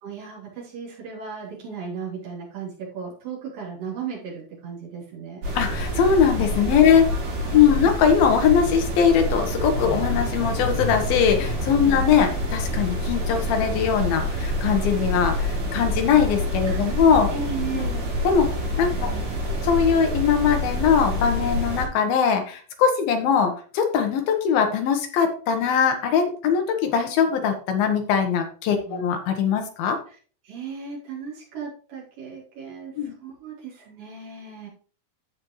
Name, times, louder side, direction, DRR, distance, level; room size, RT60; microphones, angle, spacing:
voice 1, 0.0-5.5 6.9-7.7 11.8-12.0 16.7-17.0 17.3-18.1 18.9-19.4 28.9-29.1 30.1-30.2 30.4-34.7, right 6 dB, 65° right, -5 dB, 5.2 m, -36 dB
sound 1, 5.4-21.9, left 1 dB, 90° right, 5.8 m, -27 dB
voice 2, 5.5-7.1 7.5-17.3 17.7-17.8 18.2-18.5 18.8-19.1 19.6-30.0 33.0-33.1, left 7 dB, 80° left, 5 dB, 3.1 m, -21 dB
sound 2, 9.4-14.1 14.4-14.5, left 3 dB, 50° left, 2.2 m, -35 dB
14.5 x 5.3 x 3.2 m, 0.40 s
omnidirectional pair, 4.3 m